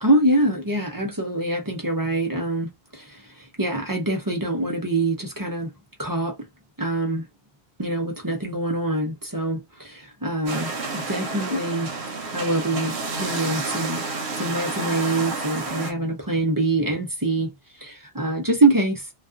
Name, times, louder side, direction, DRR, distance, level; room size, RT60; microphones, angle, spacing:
voice 1, 0.0-5.7 6.0-6.5 6.8-7.3 7.8-11.9 12.3-14.0 14.4-19.1, right 2 dB, 25° right, 0.6 m, -25 dB
sound 1, 10.5-15.9, right 3 dB, 85° right, 1.0 m, -30 dB
2.4 x 2.3 x 2.5 m
omnidirectional pair, 1.1 m